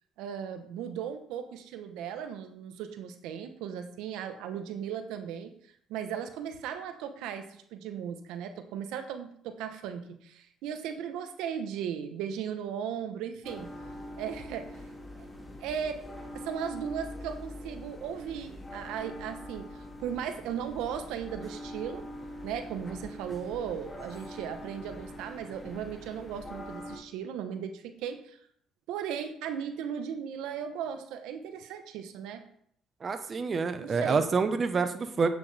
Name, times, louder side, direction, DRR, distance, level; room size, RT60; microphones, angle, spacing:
voice 1, 0.2-5.5 5.9-13.7 14.2-14.7 15.6-16.0 16.3-22.1 22.4-28.4 28.9-32.4 33.8-34.3, right 8 dB, 85° right, 8 dB, 1.0 m, -37 dB
sound 1, 13.4-27.0, left 1 dB, 15° left, 2.4 m, -43 dB
voice 2, 33.0-35.3, right 4 dB, 35° right, 9 dB, 1.0 m, -27 dB
10.5 x 8.6 x 3.4 m, 0.64 s
cardioid pair, 90°, 0 cm